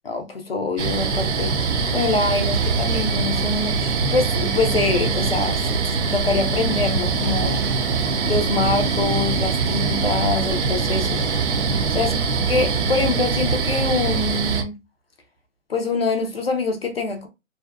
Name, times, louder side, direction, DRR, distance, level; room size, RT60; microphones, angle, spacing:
voice 1, 0.0-1.5 1.9-7.6 8.2-11.2 11.9-12.1 12.5-14.7 15.7-17.3, left 3 dB, 50° left, 0.4 m, -24 dB
sound 1, 0.8-14.6, right 4 dB, 60° right, 0.6 m, -23 dB
2.6 x 2.2 x 2.3 m
hypercardioid pair, 175°, 40 cm